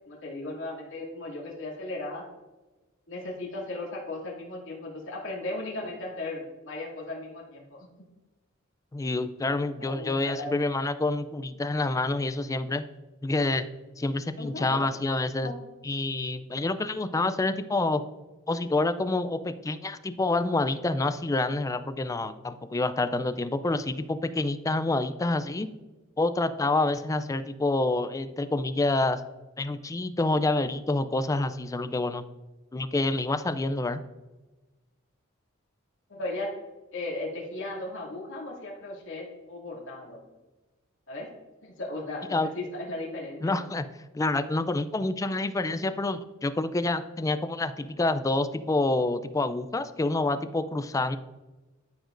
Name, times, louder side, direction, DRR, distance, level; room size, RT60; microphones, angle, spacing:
voice 1, 0.1-2.2 3.1-7.9 9.8-10.5 14.4-14.8 15.4-15.5 36.1-36.5 36.9-40.2 41.1-41.3 41.6-43.7, left 2 dB, 65° left, -4 dB, 2.4 m, -36 dB
voice 2, 8.9-12.8 13.2-13.6 14.0-15.5 15.8-18.0 18.5-25.7 26.2-29.2 29.6-32.2 32.7-34.0 42.3-42.5 43.4-43.9 44.1-51.2, left 2 dB, 15° left, 12 dB, 0.3 m, -27 dB
12.5 x 5.1 x 2.5 m, 1.1 s
head